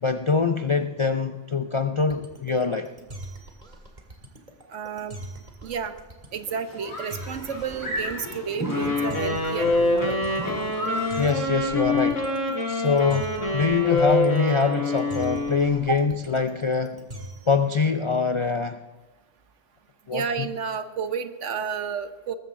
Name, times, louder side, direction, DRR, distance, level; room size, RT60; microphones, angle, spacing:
voice 1, 0.0-2.9 11.2-12.3 12.7-17.1 17.5-18.8 20.1-20.5, left 5 dB, 50° left, 8 dB, 0.3 m, -24 dB
sound 1, 2.0-17.6, right 1 dB, 35° right, 2.1 m, -42 dB
voice 2, 4.7-5.2 5.6-5.9 6.3-10.2 15.9-16.0 20.1-22.4, right 6 dB, 75° right, 9 dB, 1.3 m, -31 dB
sound 2, 6.3-11.3, equal, 15° left, 3.2 m, -34 dB
Wind instrument woodwind instrument, 8.7-15.9, left 2 dB, 85° left, 4.3 m, -26 dB
20.0 x 14.5 x 3.7 m, 1.1 s
omnidirectional pair, 1.3 m